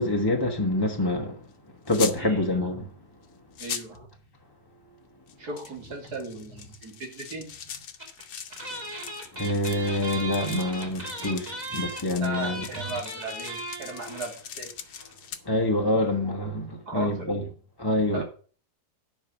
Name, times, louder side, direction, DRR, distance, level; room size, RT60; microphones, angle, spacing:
voice 1, 0.0-1.5 1.8-2.9 8.7-8.8 9.3-12.6 15.4-17.4 17.8-18.2, left 1 dB, 15° left, 0.9 m, -26 dB
sound 1, 1.9-2.2 3.2-3.3 3.5-4.0 5.3-15.4, left 8 dB, 80° left, 1.5 m, -40 dB
voice 2, 2.2-2.5 3.6-4.1 5.4-7.5 12.2-14.7 15.9-16.1 16.9-17.3 18.1-18.2, right 2 dB, 75° right, 3.4 m, -37 dB
sound 2, 8.0-8.2 8.5-14.4 14.7-14.8 14.9-15.1, right 1 dB, 25° right, 2.7 m, -37 dB
10.5 x 5.4 x 7.1 m
omnidirectional pair, 1.7 m